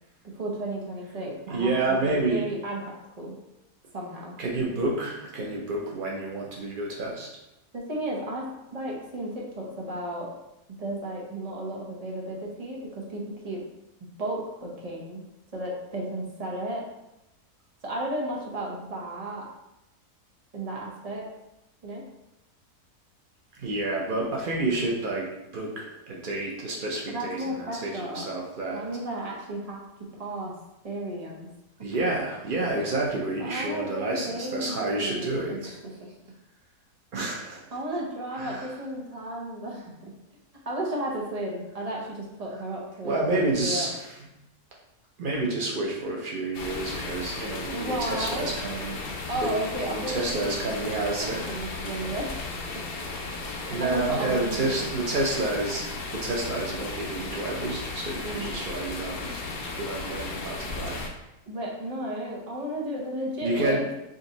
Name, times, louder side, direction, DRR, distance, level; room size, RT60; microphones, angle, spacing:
voice 1, 0.2-3.4 3.9-4.3 7.7-10.3 10.8-13.6 14.2-15.2 15.5-16.8 17.8-19.5 20.5-21.3 21.8-22.1 27.1-28.3 28.7-30.5 30.8-31.5 31.8-32.0 33.4-35.7 36.0-36.1 37.4-40.2 40.7-43.9 47.7-48.5 49.3-52.3 53.5-54.9 58.2-58.6 61.5-63.9, right 1 dB, 35° right, -3 dB, 0.6 m, -34 dB
voice 2, 1.5-2.5 4.4-7.3 23.6-28.8 31.8-35.8 37.1-37.6 38.3-38.7 43.0-44.0 45.2-49.0 49.4-49.5 49.9-51.5 53.7-55.9 56.1-59.3 59.8-61.0 63.4-63.8, right 2 dB, 90° right, -2 dB, 0.4 m, -29 dB
sound 1, 46.5-61.1, left 3 dB, 75° left, 0.5 m, -35 dB
3.9 x 2.6 x 3.9 m, 0.90 s
omnidirectional pair, 1.7 m